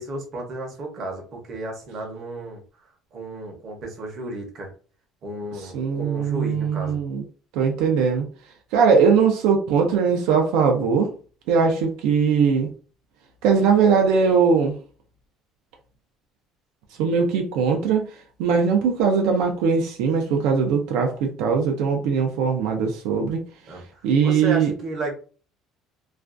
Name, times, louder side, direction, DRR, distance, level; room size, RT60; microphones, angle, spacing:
voice 1, 0.0-4.7 5.2-7.0 23.7-25.1, right 1 dB, 35° right, 1 dB, 0.7 m, -33 dB
voice 2, 5.7-7.2 7.5-8.3 8.7-11.1 11.5-12.7 13.4-14.8 17.0-18.1 18.4-23.4 24.0-24.7, right 6 dB, 70° right, 2 dB, 0.4 m, -20 dB
2.4 x 2.2 x 2.4 m, 0.38 s
cardioid pair, 180°, 0 cm